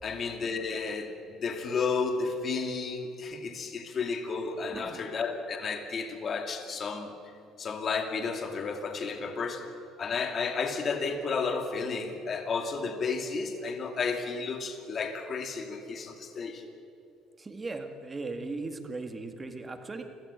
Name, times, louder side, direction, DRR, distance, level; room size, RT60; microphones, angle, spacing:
voice 1, 0.0-7.1 7.6-9.6 10.0-16.6, left 4 dB, 35° left, 5 dB, 2.4 m, -32 dB
voice 2, 4.7-5.0 17.4-20.0, right 3 dB, 20° right, 6 dB, 1.9 m, -38 dB
29.0 x 14.5 x 8.4 m, 2.7 s
cardioid pair, 130°, 0 cm